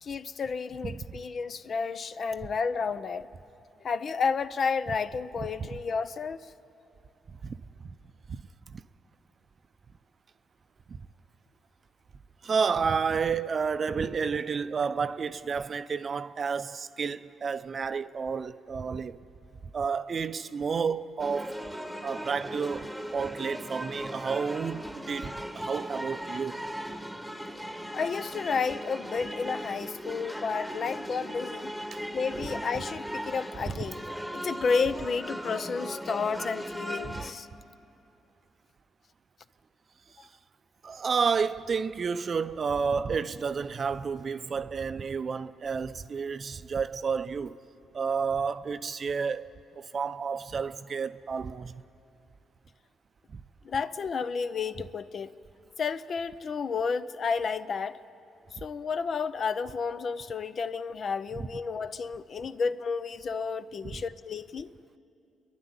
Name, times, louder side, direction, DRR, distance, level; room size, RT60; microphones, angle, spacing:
voice 1, 0.0-3.3 3.8-6.5 27.9-31.7 32.1-34.0 34.3-37.5 40.2-40.3 53.6-55.3 55.8-58.0 58.5-64.7, left 5 dB, 50° left, 0.6 m, -31 dB
voice 2, 12.4-19.2 19.7-21.6 22.0-26.6 31.9-32.0 33.7-33.8 37.0-37.2 40.8-47.5 47.9-51.8 53.3-53.4 63.9-64.0, right 5 dB, 45° right, 0.6 m, -31 dB
sound 1, 21.2-37.3, equal, ahead, 1.3 m, -38 dB
28.0 x 11.0 x 9.7 m
cardioid pair, 90°, 0 cm